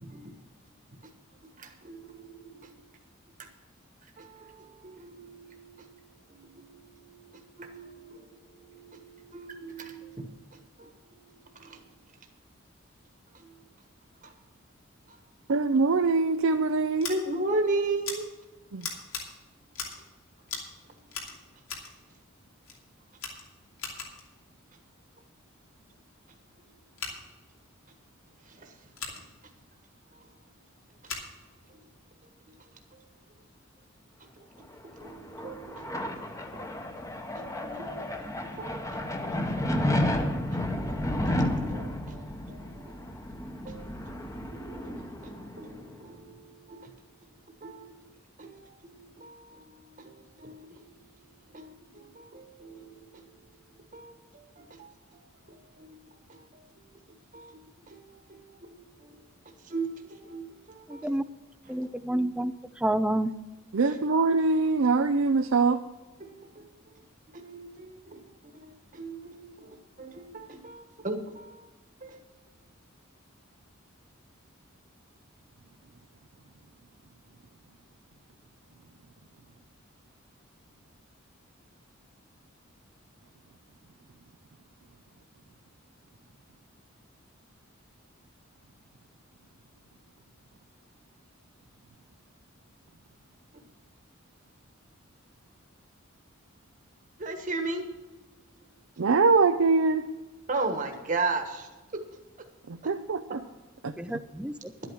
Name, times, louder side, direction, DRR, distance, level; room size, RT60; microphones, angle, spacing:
voice 1, 0.0-0.3 1.6-2.8 4.2-6.0 6.3-11.3 11.5-11.8 13.4-13.5 14.2-14.3 17.1-18.2 26.6-26.7 28.5-28.7 32.9-33.0 34.2-34.3 35.0-36.2 36.5-36.7 37.3-40.1 40.5-42.9 43.6-44.2 44.5-46.9 47.6-48.1 48.4-51.0 51.5-53.2 53.9-54.9 55.8-56.4 57.3-59.2 59.7-61.2 63.8-64.0 66.2-66.8 67.3-68.2 68.5-71.7 72.0-72.2 97.2-97.8 100.5-101.7, right 3 dB, 40° right, 4 dB, 1.3 m, -38 dB
voice 2, 15.5-17.1 18.7-18.9 63.7-65.8 99.0-100.0 102.9-103.4 103.8-103.9, right 4 dB, 70° right, 7 dB, 0.5 m, -23 dB
Scissors, 17.0-17.1 18.0-18.2 18.8-19.2 19.7-20.1 20.5-20.7 21.1-21.9 22.6-22.8 23.2-24.3 26.9-27.1 28.9-29.2 31.0-31.3, left 5 dB, 80° left, 2.8 m, -38 dB
sound 1, 34.7-46.0, left 1 dB, 15° left, 1.0 m, -32 dB
voice 3, 60.9-61.2 61.7-62.5 62.8-63.3 103.8-104.7, right 1 dB, 5° right, 12 dB, 0.4 m, -29 dB
11.5 x 8.9 x 6.2 m, 1.2 s
head